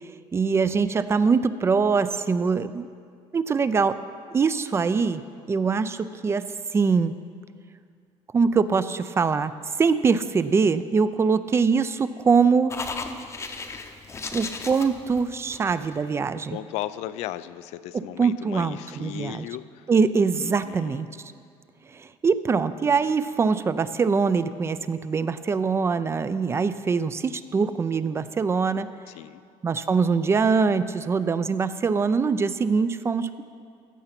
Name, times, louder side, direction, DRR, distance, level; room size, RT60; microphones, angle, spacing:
voice 1, 0.3-2.9 3.3-4.0 4.3-7.1 8.3-9.5 9.8-12.7 14.3-16.6 17.9-19.5 19.9-21.1 21.9-28.9 29.6-33.4, right 5 dB, 25° right, 13 dB, 0.4 m, -23 dB
sound 1, 12.7-16.0, left 4 dB, 25° left, 0.7 m, -35 dB
voice 2, 16.3-19.9 20.4-21.1 29.1-29.4, left 14 dB, 85° left, 14 dB, 0.4 m, -36 dB
15.5 x 6.9 x 5.9 m, 2.2 s
cardioid pair, 135°, 11 cm